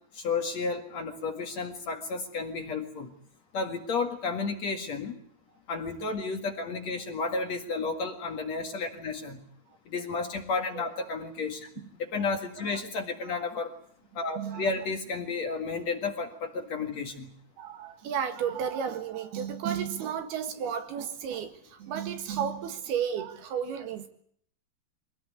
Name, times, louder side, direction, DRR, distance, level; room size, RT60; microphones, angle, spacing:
voice 1, 0.1-3.1 3.5-5.1 5.7-9.4 9.9-11.7 12.0-13.7 14.1-17.3, left 4 dB, 50° left, 4 dB, 2.7 m, -32 dB
voice 2, 14.4-14.7 17.6-24.1, right 8 dB, 70° right, 8 dB, 3.6 m, -33 dB
24.5 x 18.0 x 9.5 m, 0.65 s
omnidirectional pair, 4.7 m